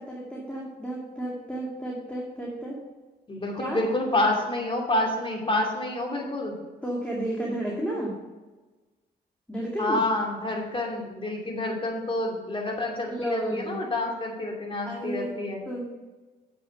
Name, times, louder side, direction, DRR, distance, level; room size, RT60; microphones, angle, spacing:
voice 1, 0.0-2.9 3.6-3.9 6.8-8.2 9.5-10.0 13.1-13.8 14.9-15.4 15.7-15.8, right 1 dB, 5° left, -4 dB, 2.1 m, -32 dB
voice 2, 3.3-6.6 9.8-15.6, left 2 dB, 30° left, 0 dB, 2.7 m, -28 dB
7.6 x 6.1 x 6.6 m, 1.2 s
cardioid pair, 70°, 18 cm